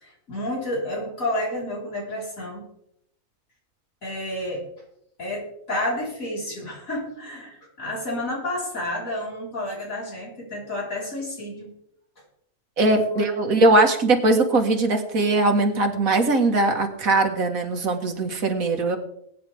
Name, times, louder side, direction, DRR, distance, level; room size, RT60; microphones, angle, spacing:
voice 1, 0.0-2.6 4.0-4.6 5.2-11.7 13.1-13.6, left 1 dB, 80° left, -3 dB, 4.8 m, -30 dB
voice 2, 12.8-19.0, right 2 dB, 85° right, 5 dB, 2.1 m, -20 dB
21.0 x 9.6 x 3.5 m, 0.72 s
omnidirectional pair, 1.4 m